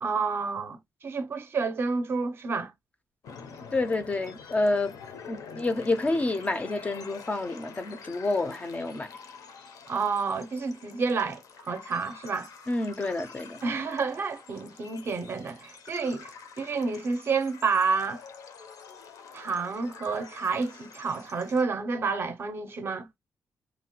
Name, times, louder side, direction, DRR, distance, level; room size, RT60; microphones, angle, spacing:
voice 1, 0.0-2.7 9.9-12.5 13.6-18.2 19.3-23.2, right 4 dB, 40° right, 0.4 m, -29 dB
sound 1, 3.2-21.6, left 5 dB, 80° left, 0.5 m, -47 dB
voice 2, 3.7-4.9 5.3-9.1 12.7-13.6, left 2 dB, 25° left, 0.3 m, -28 dB
2.8 x 2.1 x 2.8 m
wide cardioid pair, 140°, 6 cm